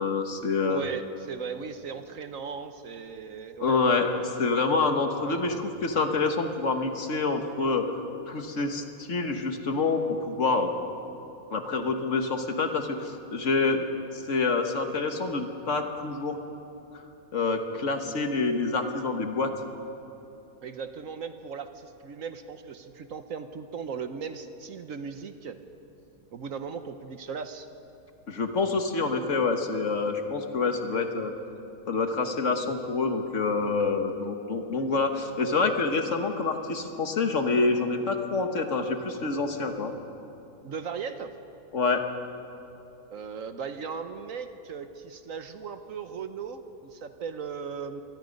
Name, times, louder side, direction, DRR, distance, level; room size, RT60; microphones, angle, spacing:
voice 1, 0.0-0.9 3.6-4.1 4.4-7.9 8.3-10.7 11.5-13.8 14.3-16.4 17.3-19.5 28.3-31.3 31.9-39.9 41.7-42.0, left 4 dB, 55° left, 5 dB, 1.6 m, -27 dB
voice 2, 0.7-4.2 5.2-5.4 20.6-25.6 26.3-27.7 40.6-41.3 43.1-48.0, right 6 dB, 60° right, 9 dB, 1.2 m, -37 dB
26.0 x 20.0 x 5.3 m, 2.8 s
omnidirectional pair, 1.6 m